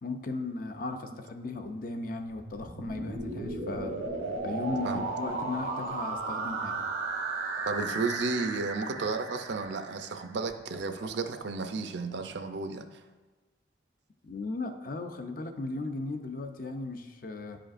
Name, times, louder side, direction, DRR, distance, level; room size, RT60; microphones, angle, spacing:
voice 1, 0.0-4.0 4.4-6.9 14.2-17.6, left 3 dB, 45° left, 7 dB, 0.5 m, -36 dB
sound 1, 2.3-10.3, right 3 dB, 90° right, 0.9 m, -35 dB
sound 2, 7.6-7.9 8.1-8.4 8.7-9.0 9.4-9.6 10.0-10.1 10.4-11.1 11.3-12.3, left 3 dB, 85° left, 1.9 m, -50 dB
voice 2, 7.7-13.0 15.8-15.9, right 4 dB, 60° right, 8 dB, 0.5 m, -33 dB
10.0 x 5.0 x 2.5 m, 1.2 s
head